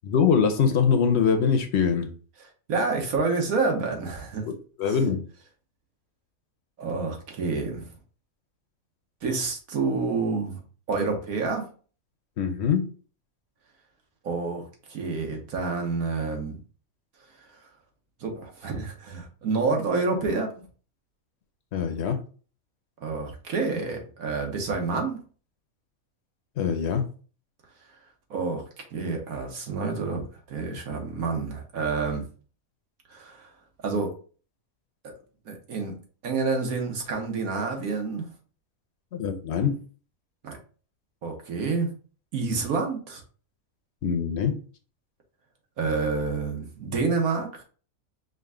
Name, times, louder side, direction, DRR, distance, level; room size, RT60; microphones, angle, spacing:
voice 1, 0.0-2.1 4.5-4.6 4.8-5.2 12.4-12.9 21.7-22.2 26.6-27.1 39.1-39.8 44.0-44.6, left 6 dB, 60° left, 5 dB, 0.8 m, -23 dB
voice 2, 2.7-4.4 6.8-7.9 9.2-10.6 10.9-11.6 14.2-14.6 14.9-16.6 18.2-20.5 23.0-25.2 28.3-28.6 28.9-32.2 33.1-33.5 33.8-34.1 35.4-35.9 36.2-38.2 40.4-40.6 41.2-41.9 42.3-43.2 45.8-47.6, right 4 dB, 80° right, 2 dB, 1.5 m, -28 dB
5.2 x 2.4 x 3.6 m, 0.40 s
omnidirectional pair, 1.5 m